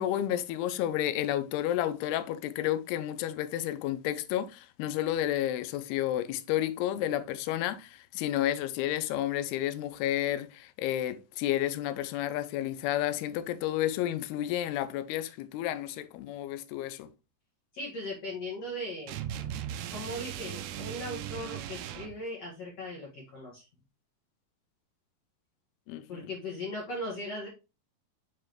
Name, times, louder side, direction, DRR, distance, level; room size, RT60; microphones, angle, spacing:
voice 1, 0.0-17.1 25.9-26.3, left 12 dB, 80° left, 2.5 m, -31 dB
voice 2, 17.7-19.2 19.9-23.6 26.1-27.5, left 1 dB, 50° left, 2.2 m, -38 dB
sound 1, 19.1-22.2, right 11 dB, 80° right, 2.4 m, -38 dB
7.4 x 4.9 x 3.0 m
omnidirectional pair, 4.9 m